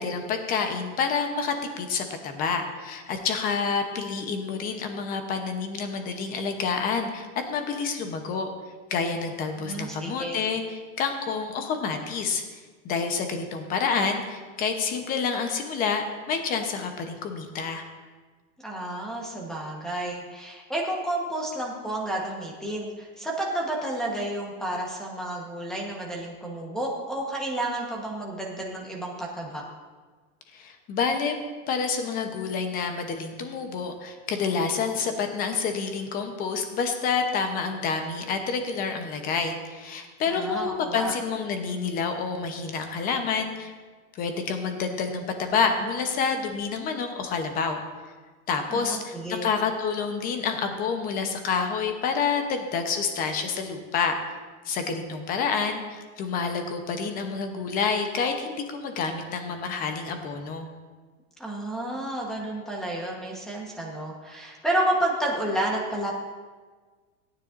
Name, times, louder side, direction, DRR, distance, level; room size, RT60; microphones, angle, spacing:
voice 1, 0.0-8.5 8.9-12.4 12.8-17.8 30.5-31.3 31.7-43.7 44.1-47.8 48.5-54.2 54.6-60.7, left 5 dB, 25° left, 6 dB, 0.9 m, -28 dB
voice 2, 9.6-10.4 18.6-29.6 40.3-41.1 48.7-49.5 61.4-66.1, right 1 dB, ahead, -2 dB, 1.1 m, -31 dB
17.5 x 9.8 x 2.6 m, 1.4 s
supercardioid pair, 170°, 38 cm